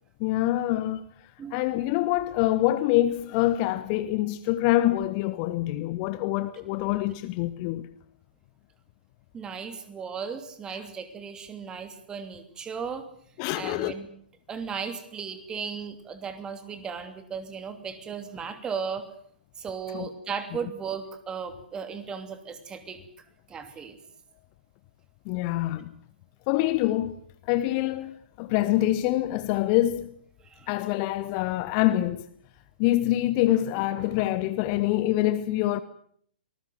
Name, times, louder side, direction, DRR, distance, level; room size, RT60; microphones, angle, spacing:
voice 1, 0.2-1.0 1.5-7.9 13.4-13.9 19.9-20.1 25.3-25.9 26.5-27.2 27.5-30.2 30.7-32.3 32.8-35.8, left 15 dB, 30° left, 1.1 m, -25 dB
voice 2, 9.3-13.0 13.5-14.1 14.5-19.1 19.6-23.0 23.5-24.0 30.5-30.7, right 6 dB, 15° right, 2.9 m, -36 dB
25.0 x 20.0 x 8.0 m
figure-of-eight pair, 120°, 5 cm